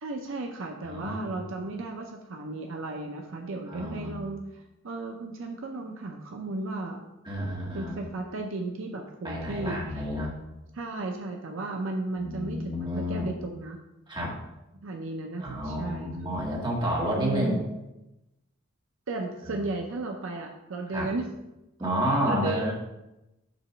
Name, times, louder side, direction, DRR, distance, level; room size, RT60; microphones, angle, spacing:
voice 1, 0.0-7.0 7.7-10.0 10.7-13.8 14.7-16.3 17.1-17.6 19.1-21.3 22.2-22.7, right 2 dB, 70° right, 2 dB, 0.6 m, -34 dB
voice 2, 0.8-1.4 3.7-4.2 7.2-7.9 9.2-10.3 12.2-13.3 14.1-14.3 15.4-17.6 19.4-19.7 20.9-21.1 21.8-22.7, equal, 20° right, -4 dB, 1.7 m, -30 dB
6.9 x 3.0 x 5.6 m, 0.93 s
head